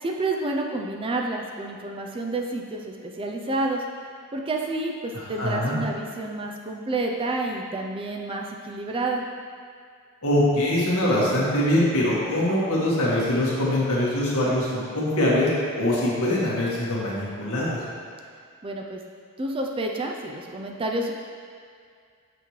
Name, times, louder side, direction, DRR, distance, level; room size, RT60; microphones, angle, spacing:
voice 1, 0.0-3.8 4.3-9.2 18.6-19.0 19.4-21.1, right 2 dB, 25° right, 1 dB, 0.4 m, -29 dB
voice 2, 5.4-5.7 10.2-15.5 15.8-17.7, left 1 dB, 65° left, -6 dB, 1.7 m, -23 dB
7.0 x 5.7 x 3.1 m, 2.1 s
head